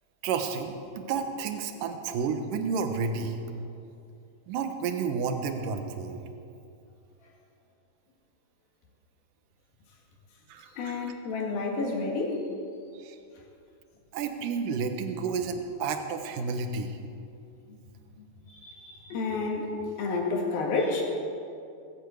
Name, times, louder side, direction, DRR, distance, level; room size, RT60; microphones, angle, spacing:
voice 1, 0.2-3.3 4.5-6.2 10.5-11.1 13.0-13.2 14.1-17.0, right 5 dB, 70° right, 6 dB, 2.4 m, -31 dB
voice 2, 10.8-12.4 17.7-17.8 18.2-19.7 20.0-21.0, left 3 dB, 70° left, -1 dB, 3.8 m, -30 dB
21.0 x 8.3 x 8.2 m, 2.5 s
omnidirectional pair, 4.6 m